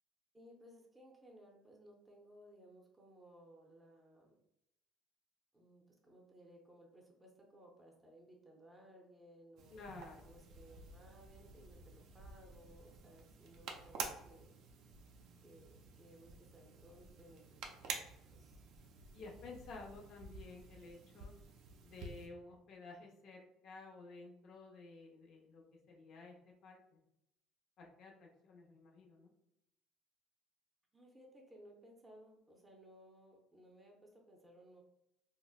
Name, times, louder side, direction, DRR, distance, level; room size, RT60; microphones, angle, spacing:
voice 1, 0.3-4.4 5.5-9.8 10.2-14.6 15.4-18.0 18.3-18.6 30.9-34.8, right 1 dB, 10° right, -1 dB, 0.6 m, -61 dB
sound 1, 9.6-22.3, right 5 dB, 65° right, 0.4 m, -50 dB
voice 2, 9.7-10.3 19.1-21.3 21.8-27.0 27.8-29.3, left 3 dB, 60° left, -1 dB, 0.7 m, -53 dB
3.8 x 2.0 x 2.3 m, 0.82 s
cardioid pair, 115°, 0 cm